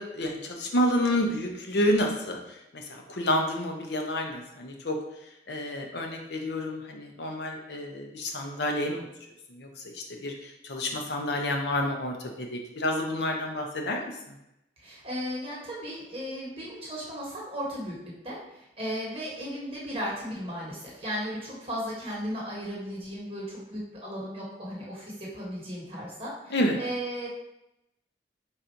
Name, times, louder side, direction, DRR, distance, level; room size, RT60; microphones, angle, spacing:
voice 1, 0.0-2.4 2.7-5.0 5.5-9.1 9.5-14.1 26.5-26.8, left 1 dB, 70° left, 2 dB, 0.6 m, -29 dB
voice 2, 14.8-27.3, equal, 30° right, -5 dB, 1.2 m, -36 dB
4.1 x 2.6 x 4.4 m, 0.85 s
head